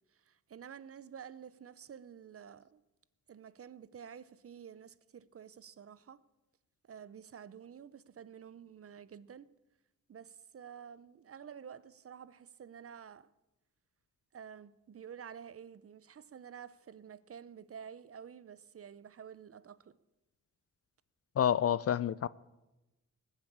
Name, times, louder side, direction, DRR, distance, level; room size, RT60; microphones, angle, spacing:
voice 1, 0.3-2.8 3.3-6.2 6.9-9.5 10.1-13.3 14.3-19.9, right 8 dB, 45° right, 0.6 m, -50 dB
voice 2, 21.4-22.3, left 9 dB, 50° left, 0.4 m, -28 dB
19.5 x 7.5 x 8.5 m
wide cardioid pair, 125°, 32 cm